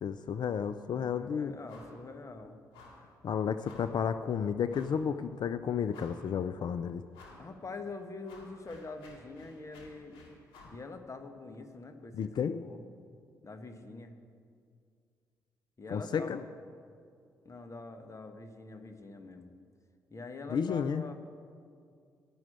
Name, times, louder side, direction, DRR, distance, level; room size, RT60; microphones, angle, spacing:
voice 1, 0.0-1.5 3.2-7.0 12.1-12.6 15.9-16.4 20.5-21.0, left 7 dB, 55° left, 11 dB, 0.4 m, -32 dB
voice 2, 0.9-2.6 7.4-10.2 10.7-12.8 13.4-14.1 15.8-16.5 17.4-19.5 20.1-21.1, left 3 dB, 35° left, 7 dB, 1.3 m, -45 dB
sound 1, 1.7-2.0 2.3-2.4 2.7-3.1 3.6-4.0 4.7-5.0 5.5-5.6 5.9-6.4 7.1-7.5 7.9-10.8, left 3 dB, 75° left, 2.1 m, -54 dB
12.5 x 6.1 x 8.9 m, 2.3 s
hypercardioid pair, 45°, 9 cm